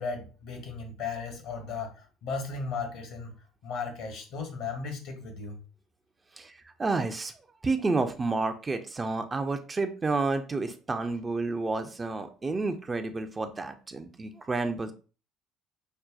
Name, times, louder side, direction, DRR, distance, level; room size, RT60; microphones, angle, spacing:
voice 1, 0.0-3.4 3.6-5.6, left 4 dB, 65° left, 0.9 m, -36 dB
voice 2, 6.4-7.3 7.6-14.9, right 3 dB, 25° right, 0.5 m, -30 dB
5.3 x 2.2 x 2.4 m
hypercardioid pair, 55°, 0 cm